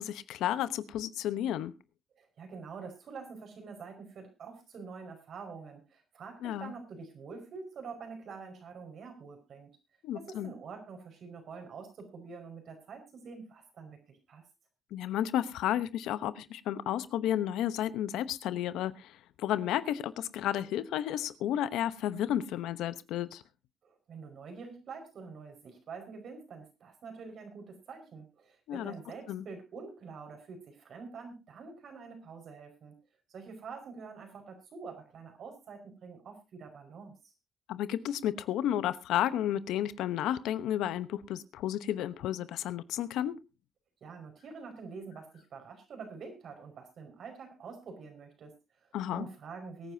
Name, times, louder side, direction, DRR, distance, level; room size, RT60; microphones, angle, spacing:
voice 1, 0.0-1.7 6.4-6.7 10.0-10.5 14.9-23.4 28.7-28.9 29.3-29.4 37.7-43.4 48.9-49.3, left 11 dB, 90° left, 15 dB, 0.9 m, -32 dB
voice 2, 2.1-9.7 10.1-14.4 23.8-32.9 33.3-37.3 44.0-49.9, right 5 dB, 60° right, 5 dB, 5.1 m, -46 dB
23.0 x 9.7 x 2.8 m, 0.25 s
cardioid pair, 90°, 0 cm